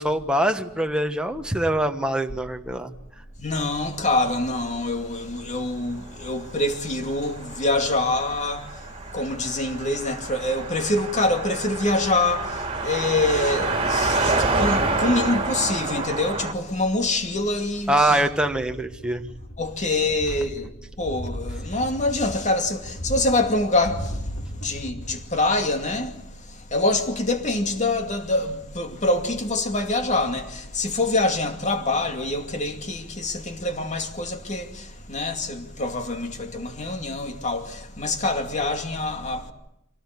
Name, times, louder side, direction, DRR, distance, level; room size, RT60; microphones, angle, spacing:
voice 1, 0.0-2.9 17.9-19.2, right 1 dB, 5° right, 1.3 m, -23 dB
voice 2, 3.4-18.2 19.6-20.7 21.0-39.5, left 2 dB, 35° left, 2.5 m, -25 dB
Car passing by, 6.4-16.5, right 3 dB, 25° right, 2.9 m, -28 dB
sound 1, 18.3-19.7 20.0-25.3 25.6-25.7, equal, 85° left, 5.0 m, -36 dB
25.0 x 18.5 x 9.6 m
head